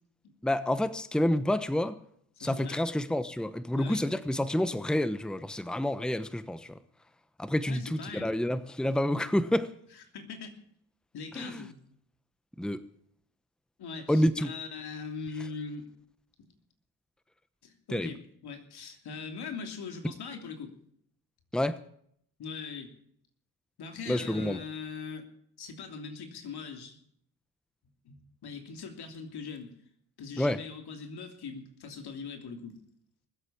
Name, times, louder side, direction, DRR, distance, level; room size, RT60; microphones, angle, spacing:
voice 1, 0.4-2.0 2.4-6.7 7.4-9.7 11.3-11.6 12.6-12.8 14.1-14.5 17.9-18.1 21.5-21.8 24.1-24.6 30.4-30.6, left 1 dB, ahead, 1.1 m, -28 dB
voice 2, 2.4-2.8 3.7-4.0 7.6-8.3 9.9-10.7 11.1-11.8 13.8-15.9 16.4-16.5 17.6-20.8 22.4-22.9 23.8-25.2 25.6-27.0 28.0-28.2 28.4-29.8 30.2-32.8, left 5 dB, 75° left, 3.0 m, -41 dB
20.0 x 8.1 x 8.7 m
supercardioid pair, 55°, 39 cm